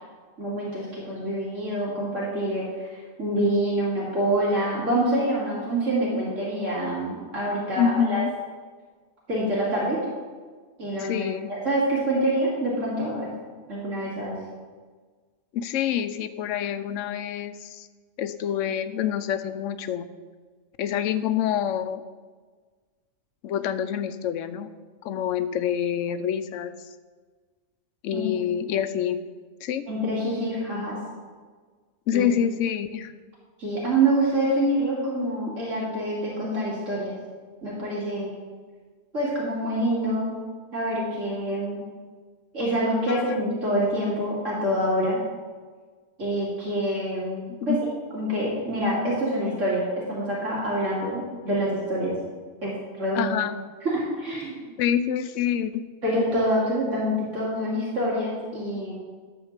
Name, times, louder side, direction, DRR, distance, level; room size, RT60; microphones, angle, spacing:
voice 1, 0.4-8.2 9.3-10.0 10.8-13.3 13.7-14.3 28.1-28.2 29.9-31.0 32.1-32.3 33.6-37.2 37.6-38.4 39.1-40.4 40.7-41.8 42.5-45.2 46.2-47.8 48.1-52.2 52.6-53.3 53.8-54.7 56.0-58.9, right 1 dB, 85° right, -7 dB, 2.8 m, -26 dB
voice 2, 7.8-8.3 11.0-11.5 15.5-17.9 18.2-20.1 20.8-22.0 23.4-24.7 25.0-26.7 28.0-29.2 29.6-29.8 32.1-33.1 43.1-43.4 47.7-47.8 53.1-53.6 54.8-55.9, left 9 dB, 80° left, 11 dB, 1.0 m, -26 dB
12.0 x 4.4 x 7.3 m, 1.5 s
omnidirectional pair, 1.3 m